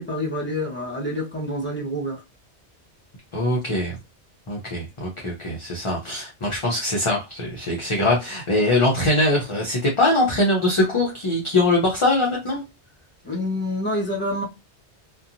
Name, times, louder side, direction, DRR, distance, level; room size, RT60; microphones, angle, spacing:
voice 1, 0.0-2.2 13.2-14.4, left 1 dB, 10° left, 0.8 m, -27 dB
voice 2, 3.3-4.0 4.5-12.6, left 2 dB, 35° left, 0.5 m, -22 dB
2.7 x 2.2 x 2.5 m
omnidirectional pair, 1.1 m